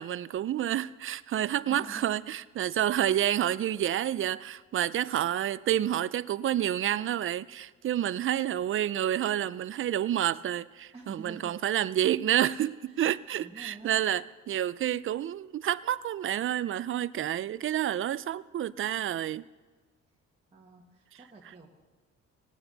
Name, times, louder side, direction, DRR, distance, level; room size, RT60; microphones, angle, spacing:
voice 1, 0.0-19.5, right 11 dB, 45° right, 0.4 m, -29 dB
voice 2, 1.7-2.1 10.9-11.6 12.9-13.0 13.3-14.0 20.5-21.7, right 3 dB, 20° right, 1.6 m, -47 dB
19.0 x 9.0 x 4.0 m
cardioid pair, 90°, 30 cm